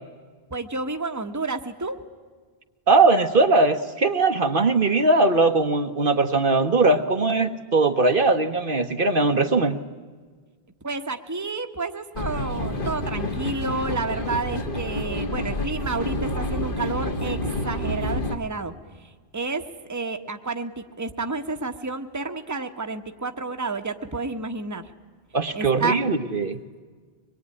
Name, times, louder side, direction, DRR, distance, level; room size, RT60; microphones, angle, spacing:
voice 1, 0.5-2.0 10.8-17.4 17.6-18.7 19.3-19.6 19.9-24.9 25.5-26.0, right 3 dB, 15° right, 6 dB, 1.2 m, -30 dB
voice 2, 2.9-9.8 25.3-26.6, right 3 dB, 55° right, 7 dB, 1.4 m, -20 dB
sound 1, 12.2-18.4, left 1 dB, 55° left, 2.0 m, -28 dB
25.0 x 21.5 x 9.8 m, 1.5 s
omnidirectional pair, 1.1 m